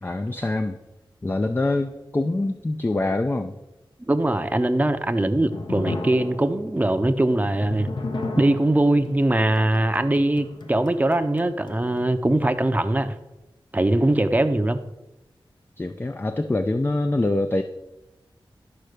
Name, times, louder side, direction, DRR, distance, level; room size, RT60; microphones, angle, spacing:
voice 1, 0.0-0.8 1.2-3.6 15.8-17.6, left 2 dB, 25° left, 7 dB, 0.5 m, -24 dB
voice 2, 4.1-7.9 8.4-13.1 13.7-14.8, right 1 dB, 20° right, 8 dB, 0.7 m, -21 dB
sound 1, 5.0-12.1, left 2 dB, 60° left, 0.9 m, -35 dB
12.0 x 4.3 x 6.6 m, 0.97 s
wide cardioid pair, 100°, 9 cm